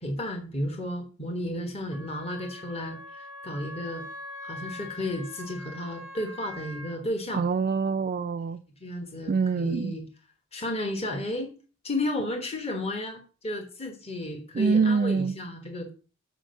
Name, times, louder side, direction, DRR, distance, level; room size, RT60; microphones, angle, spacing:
voice 1, 0.0-4.0 4.4-7.4 8.8-10.1 10.5-11.5 11.8-15.9, left 1 dB, 30° left, 1.3 m, -33 dB
Wind instrument woodwind instrument, 1.9-7.0, left 2 dB, 60° left, 5.6 m, -43 dB
voice 2, 7.3-8.6 9.3-9.9 14.6-15.3, right 5 dB, 45° right, 0.3 m, -25 dB
7.5 x 5.1 x 6.5 m
head